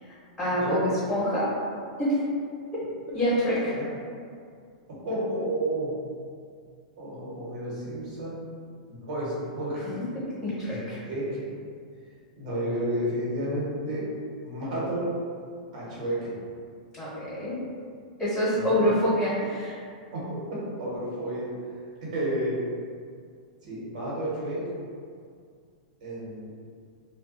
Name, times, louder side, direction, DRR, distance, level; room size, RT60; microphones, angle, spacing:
voice 1, 0.4-1.5 2.0-2.2 3.1-3.7 10.4-11.0 17.0-17.5 18.2-19.8, equal, 10° left, -10 dB, 1.2 m, -26 dB
voice 2, 5.0-5.9 7.0-8.4 8.9-9.9 10.7-11.4 12.3-14.0 14.4-15.0 15.7-16.3 18.5-18.9 20.1-20.2 20.5-21.5 22.0-22.6 23.6-24.6 26.0-26.5, right 1 dB, 70° right, -7 dB, 1.3 m, -31 dB
2.4 x 2.2 x 3.8 m, 2.2 s
hypercardioid pair, 120°, 4 cm